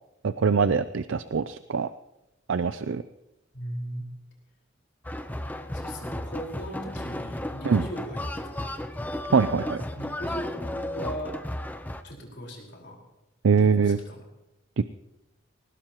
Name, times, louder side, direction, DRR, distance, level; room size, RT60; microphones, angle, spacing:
voice 1, 0.2-1.9 2.5-3.0 7.6-7.8 9.3-9.8 13.4-14.0 14.8-14.9, right 5 dB, 70° right, 13 dB, 0.5 m, -23 dB
voice 2, 3.5-4.0 5.7-8.7 9.9-11.4 12.0-13.0 13.8-14.2, equal, 60° left, -1 dB, 4.7 m, -38 dB
sound 1, 5.0-12.0, left 1 dB, 10° left, 0.6 m, -34 dB
21.0 x 19.5 x 3.0 m, 0.94 s
head